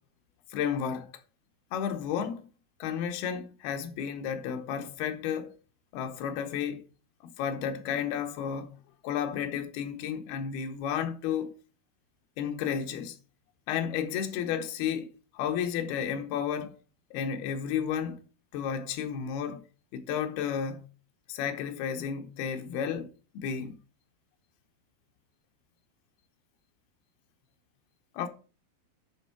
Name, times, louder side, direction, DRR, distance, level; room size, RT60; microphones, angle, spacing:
voice 1, 0.5-1.1 1.7-2.4 2.8-5.6 5.9-6.9 7.4-8.8 9.0-11.5 12.4-13.2 13.7-16.8 17.1-18.2 18.5-19.6 19.9-20.8 21.3-23.8 28.1-28.3, left 8 dB, 85° left, 2.9 m, -32 dB
11.0 x 3.6 x 5.8 m
omnidirectional pair, 4.3 m